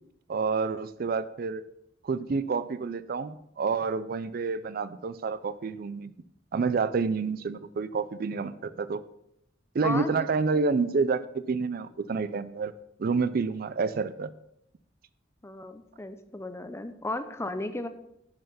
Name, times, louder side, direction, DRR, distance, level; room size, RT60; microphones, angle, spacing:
voice 1, 0.3-1.6 2.0-6.1 6.5-9.0 9.7-12.7 13.0-14.3, right 4 dB, 50° right, 15 dB, 0.4 m, -28 dB
voice 2, 9.8-10.3 10.5-10.7 15.4-17.9, left 2 dB, 15° left, 10 dB, 0.6 m, -35 dB
10.5 x 5.7 x 5.6 m, 0.79 s
head